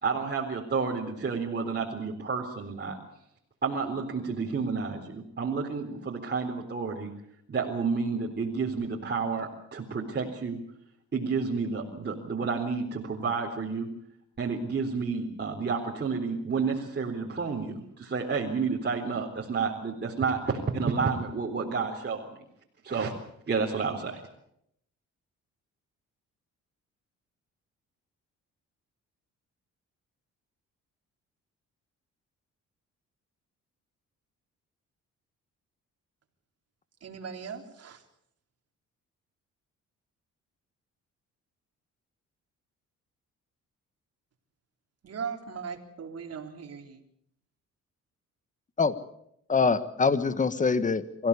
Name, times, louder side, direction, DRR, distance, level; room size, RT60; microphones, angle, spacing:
voice 1, 0.0-3.0 3.6-7.1 7.5-10.6 11.1-13.9 14.4-22.2 22.8-23.1 23.5-24.2, right 5 dB, 35° right, 4.0 m, -30 dB
voice 2, 37.0-38.0 45.0-47.0, right 6 dB, 55° right, 3.7 m, -39 dB
voice 3, 49.5-51.3, left 4 dB, 25° left, 1.4 m, -24 dB
24.5 x 16.0 x 8.5 m
cardioid pair, 90°, 30 cm